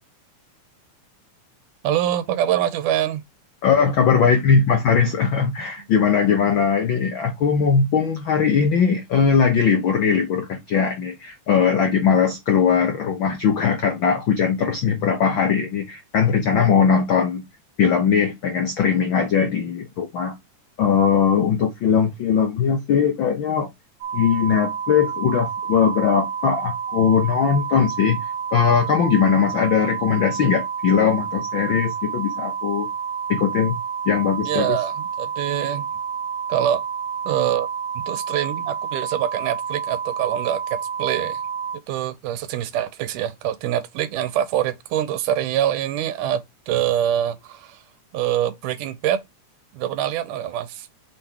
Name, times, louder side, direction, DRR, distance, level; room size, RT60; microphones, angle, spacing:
voice 1, 1.8-3.2 34.4-35.9 36.5-36.8 37.3-37.7 38.1-41.4 41.9-47.8 48.1-49.2 49.7-50.9, right 11 dB, 85° right, 2.4 m, -24 dB
voice 2, 3.6-17.4 17.8-20.4 20.8-23.7 24.1-28.2 28.5-32.9 33.3-33.8 34.1-34.8, left 6 dB, 90° left, 1.0 m, -20 dB
sound 1, 24.0-41.8, right 7 dB, 65° right, 1.3 m, -29 dB
6.0 x 4.5 x 3.7 m
omnidirectional pair, 3.6 m